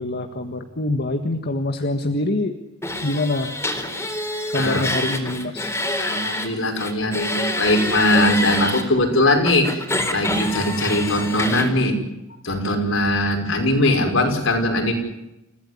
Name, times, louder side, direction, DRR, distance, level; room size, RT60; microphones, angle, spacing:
voice 1, 0.0-2.5 3.0-3.5 4.5-5.7, left 2 dB, 50° left, 6 dB, 1.7 m, -24 dB
sound 1, 2.8-6.5 6.8-8.8 9.5-11.7, left 1 dB, 15° left, 4.1 m, -26 dB
voice 2, 4.5-4.9 6.0-9.8 10.1-12.0 12.4-14.9, left 1 dB, 70° left, 4 dB, 5.7 m, -20 dB
29.5 x 16.5 x 9.7 m, 0.93 s
head